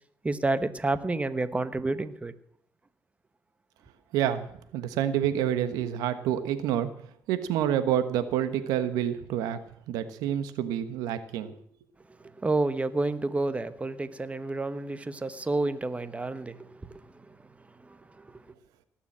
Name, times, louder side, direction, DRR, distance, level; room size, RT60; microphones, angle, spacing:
voice 1, 0.2-2.3 12.4-16.6, right 2 dB, 20° right, 13 dB, 1.2 m, -29 dB
voice 2, 4.1-4.4 4.7-6.9 7.3-9.6 9.9-11.6, right 10 dB, 90° right, 12 dB, 1.2 m, -28 dB
18.0 x 7.2 x 7.4 m, 0.67 s
supercardioid pair, 75°, 6 cm